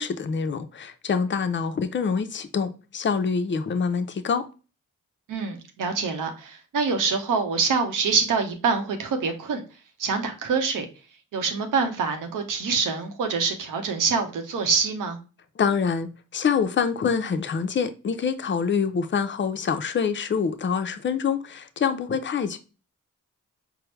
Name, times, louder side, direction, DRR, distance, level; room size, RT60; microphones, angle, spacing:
voice 1, 0.0-4.4 15.6-22.6, left 6 dB, 40° left, 0.5 m, -26 dB
voice 2, 5.3-9.6 10.0-10.9 11.3-15.2, right 5 dB, 85° right, 0.7 m, -25 dB
4.4 x 2.1 x 3.1 m
cardioid pair, 50°, 31 cm